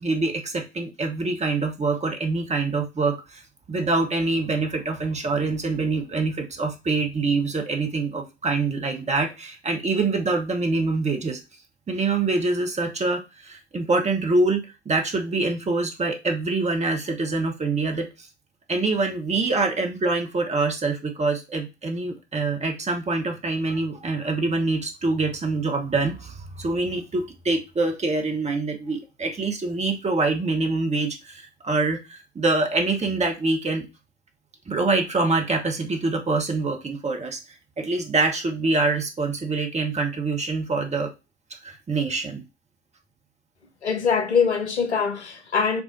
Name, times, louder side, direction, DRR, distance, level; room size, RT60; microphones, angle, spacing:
voice 1, 0.0-3.4 3.7-11.4 11.9-18.3 18.7-33.9 34.7-37.4 37.8-41.1 41.6-42.4, right 3 dB, 20° right, 1.1 m, -25 dB
voice 2, 43.8-45.8, left 6 dB, 85° left, 0.7 m, -23 dB
7.0 x 2.4 x 2.6 m
figure-of-eight pair, 60°, 33 cm